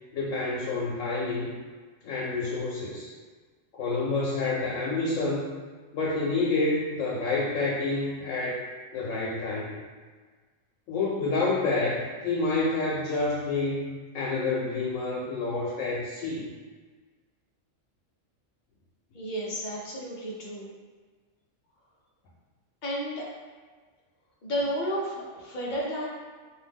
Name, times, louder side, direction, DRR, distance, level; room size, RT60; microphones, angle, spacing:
voice 1, 0.1-1.5 2.0-3.1 3.7-5.5 5.9-8.6 8.9-9.8 10.9-13.9 14.1-16.5, left 3 dB, 85° left, -5 dB, 1.0 m, -28 dB
voice 2, 19.1-20.7 22.8-23.3 24.4-26.1, equal, 50° left, -4 dB, 0.6 m, -32 dB
2.6 x 2.0 x 3.4 m, 1.5 s
omnidirectional pair, 1.3 m